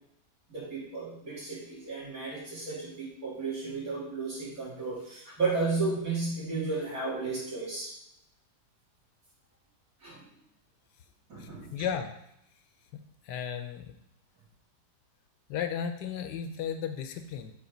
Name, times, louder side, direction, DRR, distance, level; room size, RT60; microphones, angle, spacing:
voice 1, 0.5-7.9 10.0-10.2 11.3-11.8, right 3 dB, 55° right, -8 dB, 3.3 m, -33 dB
voice 2, 11.4-12.1 12.9-13.9 15.5-17.5, left 8 dB, 85° left, 8 dB, 1.3 m, -35 dB
7.3 x 3.6 x 5.1 m, 0.79 s
omnidirectional pair, 1.8 m